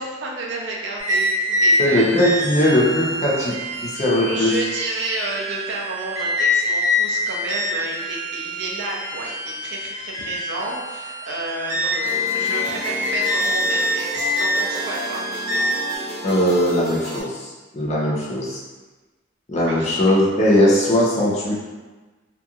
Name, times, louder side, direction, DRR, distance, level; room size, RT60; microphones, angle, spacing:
voice 1, 0.0-2.5 4.1-15.2 19.7-20.0, right 2 dB, 70° right, -2 dB, 0.5 m, -31 dB
Beethoven Lamp, 1.0-16.0, left 1 dB, 40° right, 1.0 m, -25 dB
voice 2, 1.8-4.5 16.2-18.6 19.5-21.5, left 1 dB, 40° left, -5 dB, 0.5 m, -19 dB
sound 1, 12.0-17.2, left 1 dB, 20° right, 1.4 m, -32 dB
2.8 x 2.5 x 2.3 m, 1.2 s
head